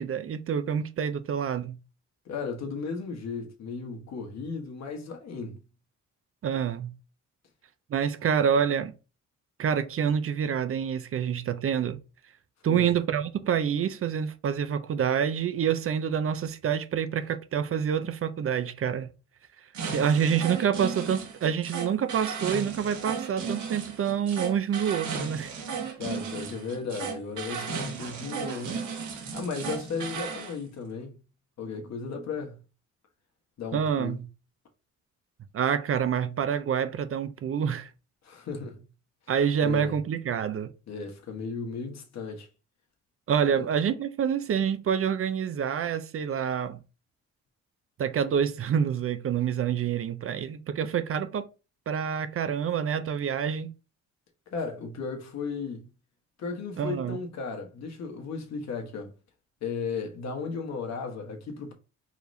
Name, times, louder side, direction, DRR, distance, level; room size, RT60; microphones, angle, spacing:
voice 1, 0.0-1.8 6.4-6.9 7.9-8.9 9.6-12.0 12.6-19.1 19.9-25.5 33.7-34.3 35.5-37.9 39.3-40.7 43.3-46.8 48.0-51.4 51.9-53.7 56.8-57.2, right 8 dB, 45° right, 0.6 m, -27 dB
voice 2, 2.2-5.7 12.6-12.9 26.0-28.9 29.3-31.2 31.6-32.6 33.6-34.2 38.2-38.9 39.6-39.9 40.9-42.5 43.6-43.7 54.5-55.9 56.4-59.1 59.6-61.7, left 5 dB, 60° left, 1.3 m, -35 dB
sound 1, 19.7-30.5, right 5 dB, 75° right, 1.5 m, -35 dB
4.8 x 3.2 x 2.7 m
cardioid pair, 90°, 30 cm